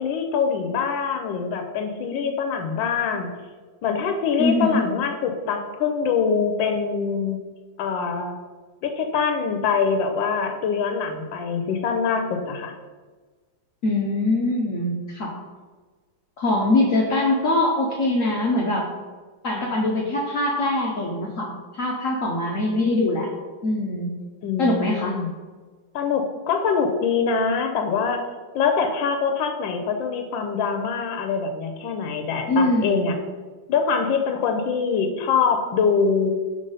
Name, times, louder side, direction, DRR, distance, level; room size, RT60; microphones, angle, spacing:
voice 1, 0.0-3.3 3.8-7.4 7.8-8.4 8.8-12.7 24.4-25.3 25.9-28.2 28.5-33.2 33.7-36.3, left 5 dB, 90° left, 5 dB, 1.3 m, -24 dB
voice 2, 4.4-4.8 13.8-15.3 16.4-18.9 19.4-23.3 23.6-24.1 24.6-25.2 32.5-33.1, left 2 dB, 60° left, -2 dB, 0.9 m, -23 dB
5.2 x 3.4 x 5.4 m, 1.4 s
omnidirectional pair, 2.0 m